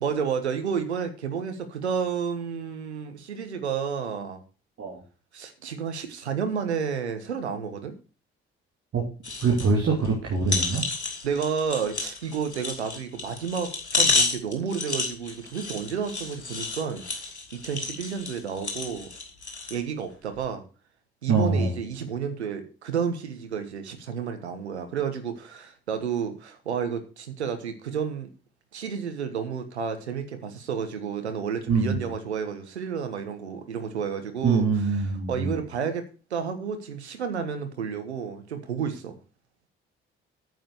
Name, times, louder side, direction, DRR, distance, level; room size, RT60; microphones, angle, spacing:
voice 1, 0.0-4.4 5.3-7.9 11.2-19.1 19.7-20.6 21.2-28.3 28.7-34.7 35.3-39.1, right 7 dB, 80° right, 8 dB, 1.3 m, -31 dB
sound 1, 9.2-9.7 10.0-10.1 10.5-19.8 20.3-20.4, left 3 dB, 85° left, 1.4 m, -30 dB
voice 2, 9.4-10.8 21.3-21.7 31.7-32.1 34.4-35.6, right 4 dB, 45° right, -2 dB, 2.9 m, -24 dB
9.3 x 7.8 x 6.9 m, 0.35 s
figure-of-eight pair, 45°, 33 cm